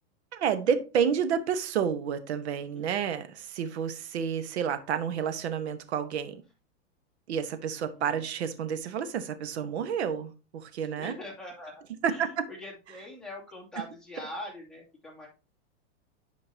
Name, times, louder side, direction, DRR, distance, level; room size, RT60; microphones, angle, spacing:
voice 1, 0.3-6.4 7.3-11.1 12.0-12.5, right 7 dB, 70° right, 1.3 m, -30 dB
voice 2, 2.7-3.3 7.9-8.3 11.0-15.3, left 1 dB, ahead, 2.5 m, -43 dB
10.5 x 5.2 x 2.8 m
hypercardioid pair, 135°, 34 cm